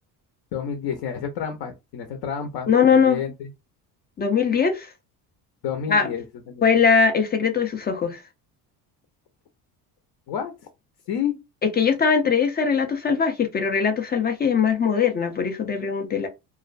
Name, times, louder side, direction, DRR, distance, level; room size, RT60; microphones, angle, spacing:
voice 1, 0.5-3.5 5.6-6.7 10.3-10.5 11.1-11.4, left 8 dB, 65° left, 0.6 m, -30 dB
voice 2, 2.7-3.2 4.2-4.9 5.9-6.1 6.6-8.2 11.6-16.3, left 6 dB, 25° left, 0.3 m, -21 dB
2.4 x 2.1 x 2.4 m
cardioid pair, 100°, 43 cm